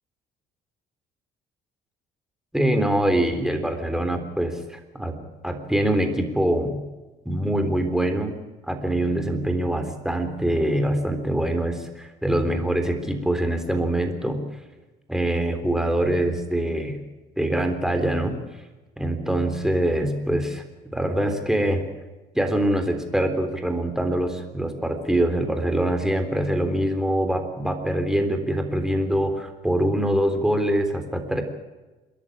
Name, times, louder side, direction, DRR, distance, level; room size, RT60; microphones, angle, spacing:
voice 1, 2.5-5.2 5.4-6.8 7.3-14.4 15.1-17.0 17.4-18.4 19.0-20.6 20.9-21.8 22.3-31.4, right 1 dB, 5° right, 6 dB, 3.5 m, -24 dB
28.0 x 11.0 x 10.0 m, 1.2 s
cardioid pair, 110°, 17 cm